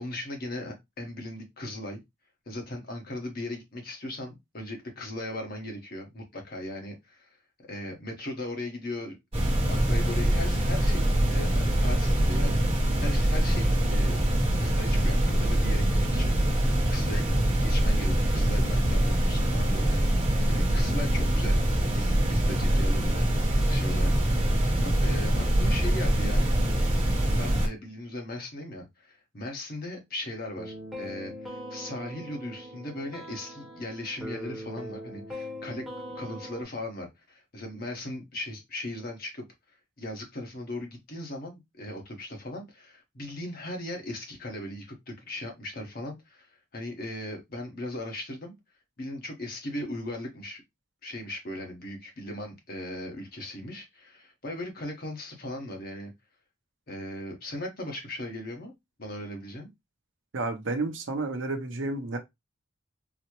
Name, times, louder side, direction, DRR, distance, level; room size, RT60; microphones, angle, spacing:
voice 1, 0.0-2.0 2.5-7.3 7.7-9.2 9.7-14.2 14.6-17.3 17.5-21.6 21.9-23.3 23.7-24.1 24.8-26.5 27.3-35.8 36.1-39.4 40.0-48.5 49.0-50.6 51.0-56.1 56.9-58.7 59.0-59.7, left 1 dB, 45° left, 1.0 m, -38 dB
sound 1, 9.3-27.7, right 1 dB, 30° right, 1.0 m, -24 dB
sound 2, 30.6-36.6, equal, ahead, 0.9 m, -41 dB
voice 2, 60.3-62.2, right 3 dB, 65° right, 0.6 m, -31 dB
4.0 x 2.0 x 2.9 m
head